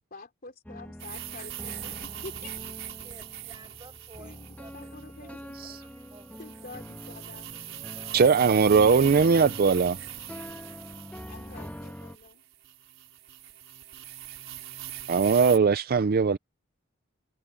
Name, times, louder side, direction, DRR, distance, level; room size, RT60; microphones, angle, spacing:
voice 1, 0.1-2.5 4.2-5.6 6.4-7.6 8.4-8.5 11.3-12.4, left 3 dB, 50° left, 3.3 m, -47 dB
sound 1, 0.7-12.2, equal, 10° left, 1.4 m, -44 dB
sound 2, 1.0-15.6, right 12 dB, 75° right, 5.0 m, -41 dB
voice 2, 3.0-8.2, right 2 dB, 20° right, 6.3 m, -54 dB
voice 3, 8.1-10.0 15.1-16.4, right 5 dB, 50° right, 0.4 m, -20 dB
head